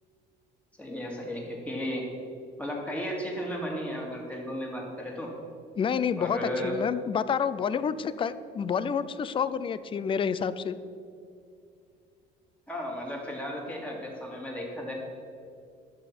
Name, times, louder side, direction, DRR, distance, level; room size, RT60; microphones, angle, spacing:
voice 1, 0.8-2.0 2.6-5.3 6.2-6.8 12.7-14.9, equal, 5° left, -1 dB, 2.4 m, -34 dB
voice 2, 5.8-10.8, left 7 dB, 30° left, 15 dB, 0.4 m, -29 dB
12.5 x 7.1 x 5.9 m, 2.5 s
cardioid pair, 135°, 19 cm